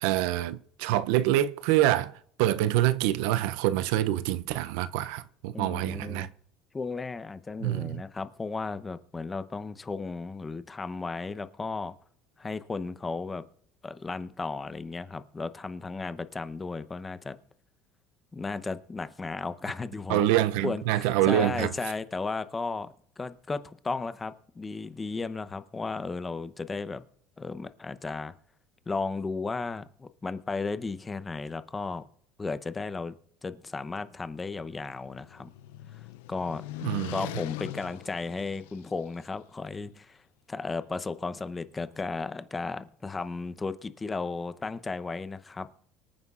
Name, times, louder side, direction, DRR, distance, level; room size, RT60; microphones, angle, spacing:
voice 1, 0.0-2.1 2.4-6.3 7.6-8.0 20.1-21.7 36.8-37.2, right 13 dB, 80° right, 0.5 m, -26 dB
voice 2, 5.5-6.3 6.7-11.9 12.4-13.4 13.8-17.4 18.3-20.3 20.6-27.0 27.4-28.3 28.9-32.1 32.4-33.1 33.4-35.5 36.3-36.6 37.1-40.2 40.5-45.9, left 4 dB, 20° left, 0.7 m, -34 dB
sound 1, 34.6-39.2, left 16 dB, 85° left, 0.4 m, -41 dB
25.0 x 9.4 x 2.4 m
supercardioid pair, 115°, 0 cm